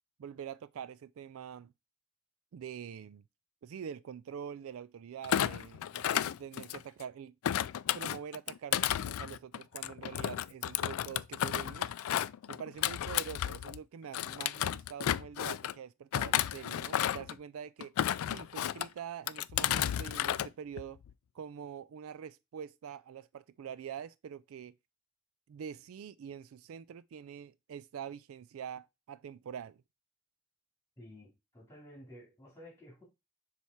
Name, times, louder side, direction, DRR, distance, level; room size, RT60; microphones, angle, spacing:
voice 1, 0.2-1.7 2.5-3.2 3.6-7.3 7.9-11.9 12.5-17.9 18.3-21.0 21.3-24.7 25.5-29.8, right 8 dB, 80° right, 0.3 m, -45 dB
Thump thud, 5.2-7.0 7.4-13.8 14.1-15.7 16.1-17.3 17.8-18.9 19.3-20.5 20.8-21.1, left 11 dB, 90° left, 0.3 m, -33 dB
voice 2, 31.0-33.0, equal, 15° left, 3.0 m, -53 dB
7.0 x 3.5 x 4.5 m
head